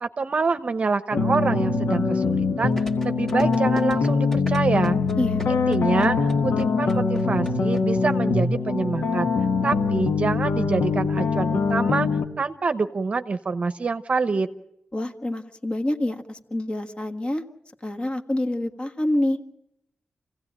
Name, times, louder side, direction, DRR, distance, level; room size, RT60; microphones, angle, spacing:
voice 1, 0.0-2.7 3.0-5.0 5.5-9.3 9.6-12.1 12.4-14.5, right 4 dB, 40° right, 10 dB, 0.9 m, -26 dB
sound 1, 1.1-12.3, left 4 dB, 85° left, 1.4 m, -23 dB
sound 2, 2.8-7.8 8.1-8.2, equal, 10° left, 1.7 m, -38 dB
voice 2, 14.9-17.4 17.8-19.4, left 1 dB, 30° left, 6 dB, 1.6 m, -27 dB
28.5 x 16.5 x 8.9 m, 0.82 s
wide cardioid pair, 175°, 4 cm